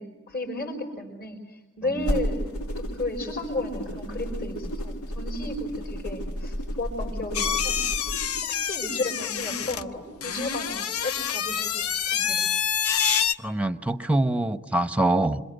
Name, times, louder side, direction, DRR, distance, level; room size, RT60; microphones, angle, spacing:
voice 1, 0.0-2.4 2.8-7.8 8.5-12.5, left 2 dB, 50° left, -4 dB, 5.3 m, -33 dB
sound 1, 2.0-8.5, equal, 90° left, 2.3 m, -32 dB
sound 2, 7.3-13.3, left 8 dB, 75° left, 0.9 m, -27 dB
voice 2, 13.4-15.4, right 2 dB, 5° right, 11 dB, 0.9 m, -24 dB
27.5 x 25.5 x 8.1 m, 1.0 s
head